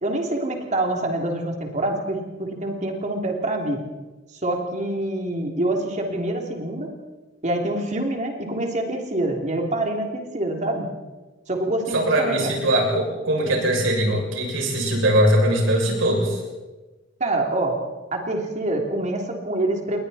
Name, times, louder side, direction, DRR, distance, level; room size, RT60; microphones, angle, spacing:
voice 1, 0.0-3.8 4.4-6.9 7.4-10.9 11.5-12.5 17.2-17.8 18.1-20.0, right 1 dB, 40° right, 2 dB, 3.3 m, -26 dB
voice 2, 11.9-16.4, right 1 dB, 90° right, -1 dB, 7.2 m, -21 dB
29.0 x 21.0 x 4.4 m, 1.2 s
head